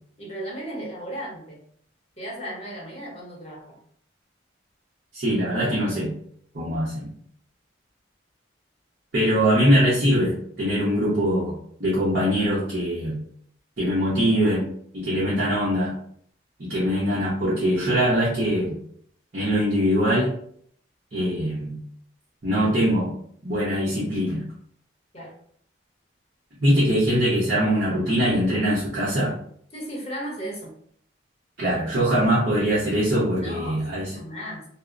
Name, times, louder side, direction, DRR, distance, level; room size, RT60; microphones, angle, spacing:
voice 1, 0.2-1.6 2.2-3.8 25.1-25.4 29.7-30.7 33.4-34.6, equal, 30° left, -4 dB, 0.8 m, -35 dB
voice 2, 5.1-6.1 6.5-7.1 9.1-13.2 13.8-14.6 14.9-15.9 16.6-18.8 19.3-20.3 21.1-21.8 22.4-23.1 23.4-24.4 26.6-29.3 31.6-34.1, equal, 50° right, -9 dB, 0.7 m, -22 dB
2.7 x 2.0 x 2.4 m, 0.62 s
head